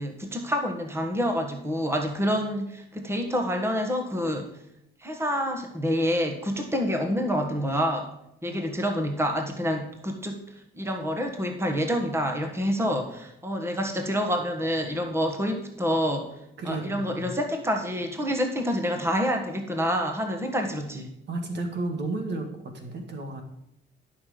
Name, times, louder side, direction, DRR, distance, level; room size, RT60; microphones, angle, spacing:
voice 1, 0.0-4.5 5.0-8.1 8.4-10.4 10.7-16.3 16.6-21.1, equal, 10° right, 4 dB, 1.5 m, -27 dB
voice 2, 16.6-17.3 21.3-23.4, right 2 dB, 60° right, 5 dB, 1.7 m, -33 dB
11.0 x 6.0 x 5.0 m, 0.79 s
cardioid pair, 90°, 20 cm